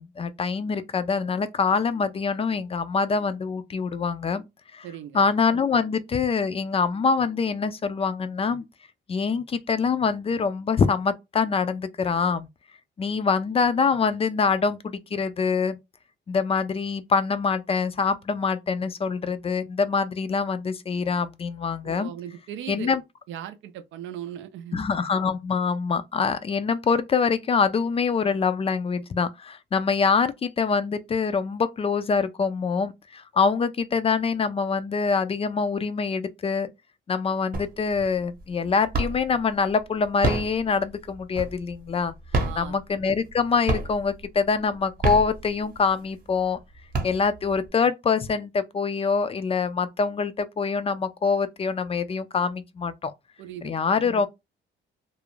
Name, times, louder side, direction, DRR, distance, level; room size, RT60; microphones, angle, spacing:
voice 1, 0.0-4.5 4.7-4.9 5.1-8.7 9.1-12.5 13.0-15.8 16.3-22.1 22.7-23.0 24.7-36.7 37.1-42.1 42.6-46.6 47.0-53.1 53.6-54.3, left 5 dB, 30° left, 0.3 m, -25 dB
voice 2, 4.8-5.3 21.8-22.9 23.3-24.8 42.3-42.8 53.4-53.7, right 10 dB, 75° right, 0.4 m, -38 dB
sound 1, 37.5-38.0 38.4-39.4 40.0-41.8 42.2-43.4 43.7-44.2 44.8-45.9 46.4-46.5 46.7-47.6, right 3 dB, 45° right, 0.8 m, -27 dB
2.4 x 2.0 x 3.0 m
cardioid pair, 90°, 20 cm